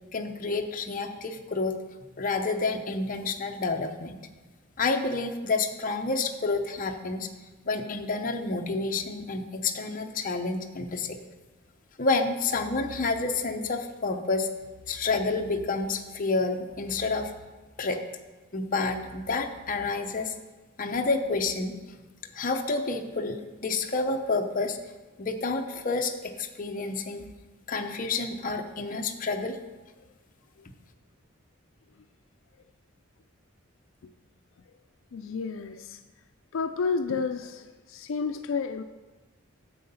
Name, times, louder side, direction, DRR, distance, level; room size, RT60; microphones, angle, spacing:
voice 1, 0.1-1.8 2.2-4.2 4.8-7.3 7.7-11.2 12.0-14.5 14.9-17.3 17.8-18.0 18.5-20.3 20.8-21.8 22.3-24.8 25.2-27.3 27.7-29.6, left 3 dB, 40° left, 4 dB, 0.7 m, -29 dB
voice 2, 35.1-36.0 36.5-38.8, left 5 dB, 75° left, 9 dB, 0.4 m, -31 dB
7.6 x 7.6 x 5.6 m, 1.2 s
head